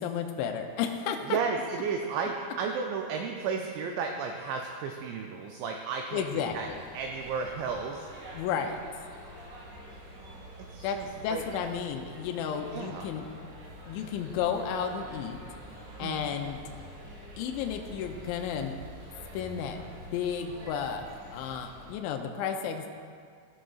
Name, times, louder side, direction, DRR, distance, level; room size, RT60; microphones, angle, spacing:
voice 1, 0.0-1.4 6.1-6.8 8.3-8.8 10.8-13.3 13.9-15.4 16.0-16.6 17.4-18.7 19.3-19.8 20.1-21.0 21.3-22.9, left 7 dB, 85° left, 4 dB, 2.7 m, -32 dB
voice 2, 1.3-6.3 6.5-6.7 6.9-8.1 9.9-10.0 10.7-11.1 11.3-11.4 12.7-13.1 16.0-16.4, right 5 dB, 90° right, 3 dB, 2.5 m, -33 dB
sound 1, 6.4-21.9, right 1 dB, 60° right, 2.8 m, -47 dB
16.0 x 6.2 x 2.3 m, 2.2 s
omnidirectional pair, 5.6 m